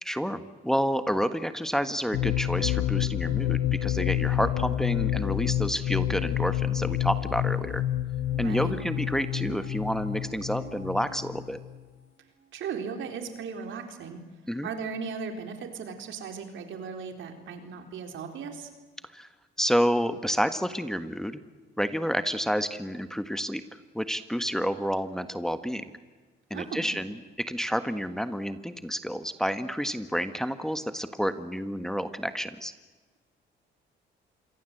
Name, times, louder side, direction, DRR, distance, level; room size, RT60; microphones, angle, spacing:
voice 1, 0.0-7.8 8.4-11.6 14.5-14.7 19.1-19.3 19.6-21.4 21.8-23.6 23.9-25.8 26.5-32.7, equal, ahead, 10 dB, 1.5 m, -29 dB
sound 1, 2.1-11.8, left 12 dB, 85° left, 0.9 m, -29 dB
sound 2, 8.3-12.1 12.4-12.5, right 5 dB, 60° right, 6.1 m, -47 dB
voice 2, 8.4-8.7 12.5-14.2 14.6-18.7 26.5-26.9, right 6 dB, 75° right, 6 dB, 4.0 m, -37 dB
27.0 x 23.5 x 8.0 m, 1.3 s
cardioid pair, 90°, 20 cm